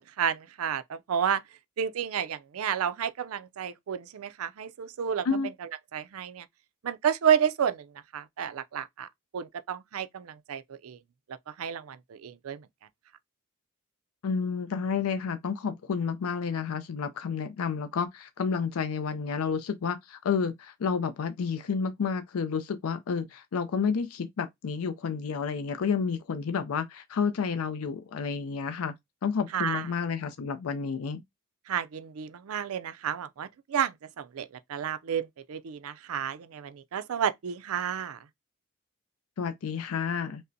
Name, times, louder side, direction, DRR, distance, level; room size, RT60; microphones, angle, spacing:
voice 1, 0.0-1.4 1.8-5.3 5.9-6.5 6.8-7.9 8.1-9.1 9.3-11.0 11.6-12.6 29.5-29.9 31.7-38.2, right 8 dB, 85° right, 0.4 m, -31 dB
voice 2, 14.2-28.9 29.2-31.2 39.4-40.4, left 6 dB, 85° left, 0.4 m, -30 dB
5.3 x 2.0 x 2.6 m
head